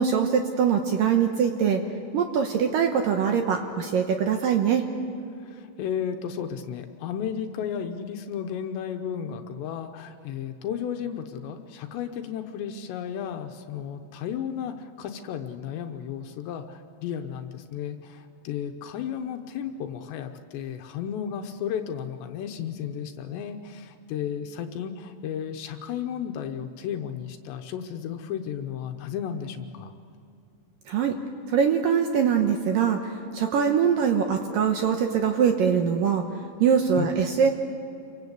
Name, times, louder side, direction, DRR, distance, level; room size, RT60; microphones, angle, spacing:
voice 1, 0.0-1.8 2.1-4.9 30.9-31.2 31.5-36.3 36.6-37.5, right 7 dB, 70° right, 4 dB, 2.3 m, -23 dB
voice 2, 5.4-29.9 37.0-37.1, left 8 dB, 80° left, 6 dB, 3.1 m, -33 dB
28.0 x 23.5 x 8.2 m, 2.6 s
omnidirectional pair, 5.1 m